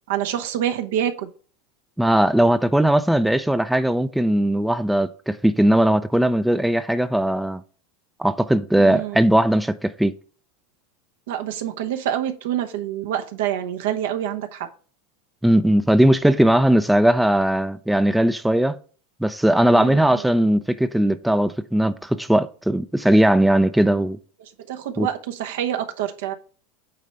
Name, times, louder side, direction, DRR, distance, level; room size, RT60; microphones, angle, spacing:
voice 1, 0.1-1.3 8.8-9.2 11.3-14.7 19.7-20.2 24.7-26.3, right 10 dB, 75° right, 0.9 m, -26 dB
voice 2, 2.0-7.6 8.2-10.1 15.4-18.8 19.2-24.2 25.0-25.1, right 1 dB, 5° right, 0.5 m, -19 dB
8.7 x 3.2 x 5.3 m
hypercardioid pair, 95°, 0 cm